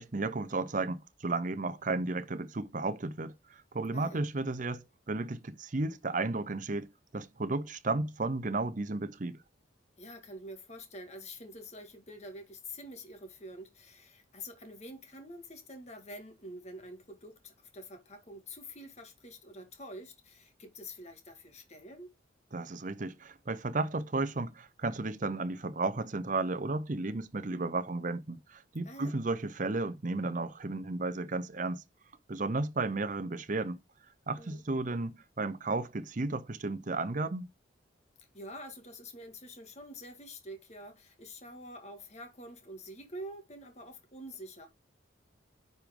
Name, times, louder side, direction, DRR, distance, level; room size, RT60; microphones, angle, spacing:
voice 1, 0.0-9.4 22.5-31.8 32.3-33.8 34.3-37.5, right 3 dB, 40° right, 0.6 m, -33 dB
voice 2, 3.9-4.2 10.0-22.1 28.8-29.1 34.4-34.6 38.3-44.7, equal, 35° left, 1.9 m, -47 dB
9.6 x 5.2 x 3.7 m
head